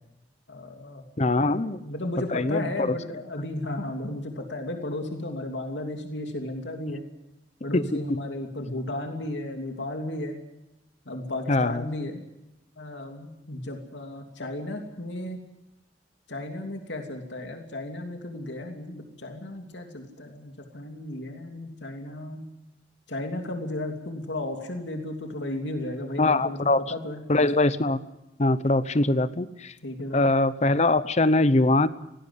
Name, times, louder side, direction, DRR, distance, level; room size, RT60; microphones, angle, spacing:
voice 1, 0.5-1.0 1.4-1.5 1.8-7.0 7.6-10.3 11.0-12.2 12.8-15.4 16.3-22.5 23.1-27.5 29.8-30.2, left 1 dB, 80° left, 4 dB, 2.9 m, -34 dB
voice 2, 1.2-1.8 2.3-2.9 7.9-8.0 11.5-11.9 26.2-26.8 27.3-28.0 28.4-29.7 30.1-31.9, left 2 dB, 40° left, 15 dB, 0.8 m, -22 dB
18.5 x 17.0 x 9.7 m, 0.90 s
head